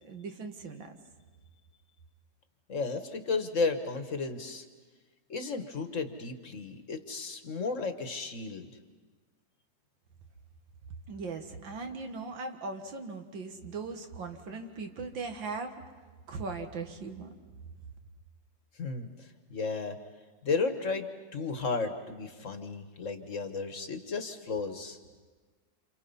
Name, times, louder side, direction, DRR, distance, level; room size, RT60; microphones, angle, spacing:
voice 1, 0.0-0.9 11.1-15.7 16.3-17.3, right 4 dB, 90° right, 5 dB, 2.4 m, -39 dB
voice 2, 2.7-4.6 5.3-8.7 18.8-20.0 20.4-25.0, left 4 dB, 45° left, 8 dB, 1.5 m, -33 dB
28.5 x 28.0 x 5.6 m, 1.4 s
omnidirectional pair, 2.0 m